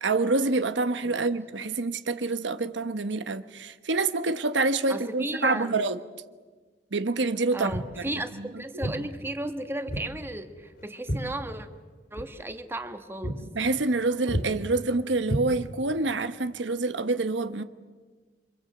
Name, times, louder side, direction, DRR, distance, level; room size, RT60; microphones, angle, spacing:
voice 1, 0.0-6.0 6.9-8.1 8.4-8.5 13.5-17.6, right 3 dB, 90° right, 1.1 m, -27 dB
voice 2, 1.0-1.3 4.9-5.8 7.5-11.7 12.1-13.4, right 1 dB, 15° right, 1.5 m, -35 dB
Walk footsteps, 7.7-8.0 8.8-9.0 9.9-10.1 10.4-11.9 12.1-12.3 12.8-12.9 13.2-13.4 13.7-14.0 14.3-14.5 15.2-15.9, equal, 55° left, 3.5 m, -32 dB
28.0 x 25.5 x 7.9 m
head